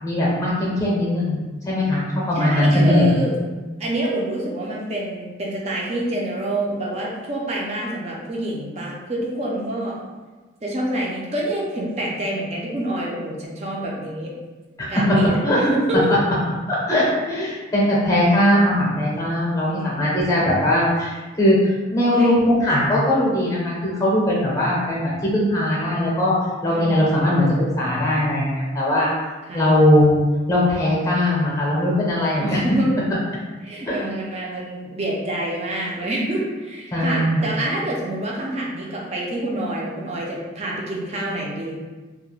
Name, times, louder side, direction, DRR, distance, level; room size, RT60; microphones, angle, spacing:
voice 1, 0.0-1.4 1.7-2.0 2.3-3.1 14.8-15.2 15.4-15.6 16.7-26.3 26.6-27.5 27.8-29.1 29.5-30.2 30.5-32.6 33.9-34.0 36.9-37.5, left 1 dB, 15° left, -5 dB, 0.6 m, -20 dB
voice 2, 2.3-3.3 3.8-10.0 10.6-14.3 14.9-16.1 19.7-20.5 22.0-22.3 26.7-27.6 29.5-29.7 32.3-32.9 33.6-41.8, right 1 dB, 35° right, -3 dB, 0.4 m, -27 dB
2.3 x 2.1 x 3.0 m, 1.3 s
head